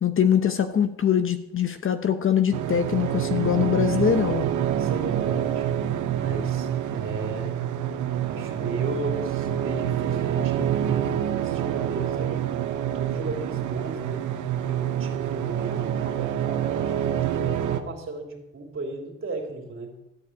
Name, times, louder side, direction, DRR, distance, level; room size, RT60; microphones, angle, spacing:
voice 1, 0.0-4.5, left 8 dB, 45° left, 9 dB, 0.9 m, -23 dB
sound 1, 2.5-17.8, right 10 dB, 75° right, 1.0 m, -27 dB
voice 2, 4.1-5.7 6.1-7.5 8.2-12.6 12.9-14.3 14.6-19.9, right 2 dB, 45° right, 2 dB, 3.2 m, -36 dB
13.5 x 4.9 x 8.4 m, 0.92 s
cardioid pair, 90°, 30 cm